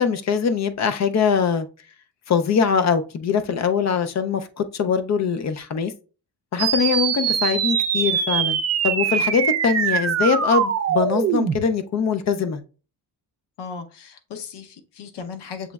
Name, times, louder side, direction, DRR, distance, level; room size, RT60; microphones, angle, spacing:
voice 1, 0.0-1.7 2.3-5.9 6.5-12.6, left 6 dB, 45° left, 0.4 m, -22 dB
sound 1, 6.6-11.6, right 7 dB, 40° right, 0.5 m, -22 dB
voice 2, 13.6-15.7, left 5 dB, 80° left, 0.8 m, -36 dB
7.0 x 3.0 x 2.3 m
wide cardioid pair, 165°, 41 cm